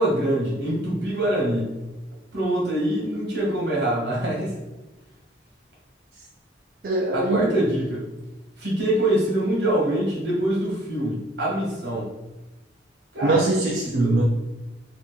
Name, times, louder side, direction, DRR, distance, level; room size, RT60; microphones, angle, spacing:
voice 1, 0.0-1.7 2.3-4.5 7.1-8.0 8.6-12.1 13.1-13.4 13.9-14.1, right 1 dB, 65° right, -4 dB, 1.2 m, -24 dB
voice 2, 6.8-7.6 13.2-14.2, right 2 dB, 50° right, -1 dB, 0.4 m, -22 dB
2.8 x 2.4 x 3.7 m, 1.1 s
head